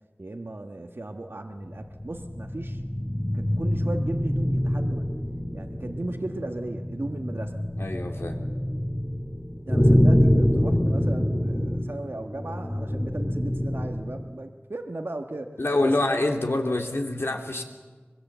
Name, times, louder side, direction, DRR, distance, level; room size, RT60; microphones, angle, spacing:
voice 1, 0.2-2.8 3.3-5.1 5.5-7.6 9.7-15.5 15.8-15.9, right 2 dB, 60° right, 5 dB, 1.4 m, -36 dB
sound 1, 1.6-14.3, equal, 25° left, 2.3 m, -25 dB
voice 2, 7.8-8.4 15.6-17.6, left 2 dB, 70° left, 3 dB, 2.8 m, -26 dB
24.5 x 20.5 x 8.1 m, 1.4 s
wide cardioid pair, 45°, 4 cm